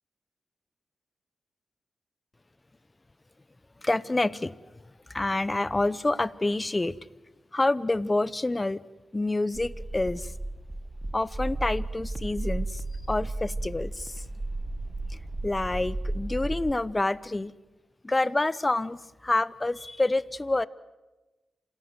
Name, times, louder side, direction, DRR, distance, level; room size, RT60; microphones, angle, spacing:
voice 1, 3.8-4.6 5.1-7.0 7.5-8.8 9.1-10.3 11.1-14.2 15.1-17.5 18.0-20.7, left 2 dB, 25° left, 19 dB, 0.8 m, -28 dB
sound 1, 9.5-16.7, right 2 dB, 30° right, 1.5 m, -34 dB
27.5 x 17.5 x 7.9 m, 1.2 s
cardioid pair, 60°, 0 cm